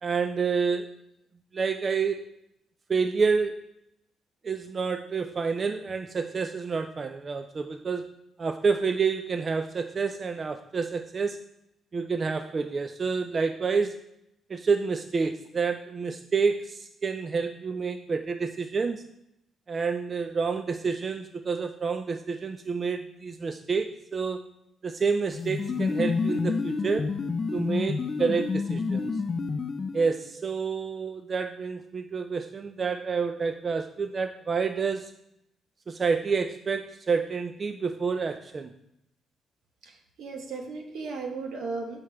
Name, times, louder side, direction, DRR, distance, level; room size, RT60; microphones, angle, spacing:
voice 1, 0.0-0.9 1.5-2.3 2.9-3.7 4.4-8.1 8.4-11.4 11.9-14.0 14.5-19.1 19.7-24.4 24.8-27.1 27.5-29.2 29.9-35.1 35.9-38.7, right 5 dB, 40° right, 7 dB, 0.4 m, -28 dB
sound 1, 25.3-30.2, left 4 dB, 35° left, 0.5 m, -29 dB
voice 2, 39.8-42.0, right 4 dB, 75° right, 3 dB, 1.2 m, -36 dB
6.4 x 4.4 x 4.7 m, 0.81 s
cardioid pair, 90°, 0 cm